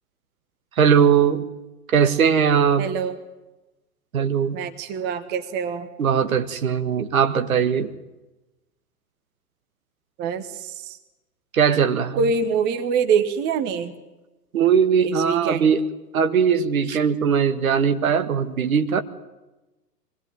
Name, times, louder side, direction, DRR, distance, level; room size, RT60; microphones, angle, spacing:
voice 1, 0.8-1.5 1.9-2.9 4.1-4.6 6.0-7.9 11.5-12.2 14.5-15.8 16.1-19.0, right 7 dB, 55° right, 8 dB, 1.8 m, -19 dB
voice 2, 2.8-3.2 4.5-5.9 10.2-11.0 12.2-13.9 15.0-15.7, right 5 dB, 20° right, 10 dB, 1.2 m, -25 dB
24.0 x 19.0 x 9.4 m, 1.1 s
figure-of-eight pair, 110°, 48 cm